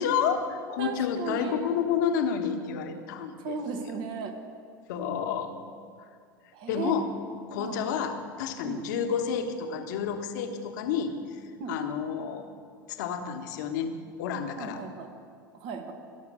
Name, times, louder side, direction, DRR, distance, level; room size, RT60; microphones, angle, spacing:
voice 1, 0.0-3.6 4.9-5.5 6.0-6.1 6.7-7.1 7.5-11.4 11.7-12.5 12.9-13.9 14.2-14.8, left 7 dB, 60° left, 6 dB, 1.2 m, -30 dB
voice 2, 0.8-1.6 3.4-4.3 6.5-6.9 7.5-7.8 8.6-8.8 11.6-11.7 14.6-15.1 15.5-15.9, right 5 dB, 50° right, 5 dB, 1.8 m, -36 dB
18.0 x 6.4 x 6.6 m, 2.2 s
figure-of-eight pair, 80°, 11 cm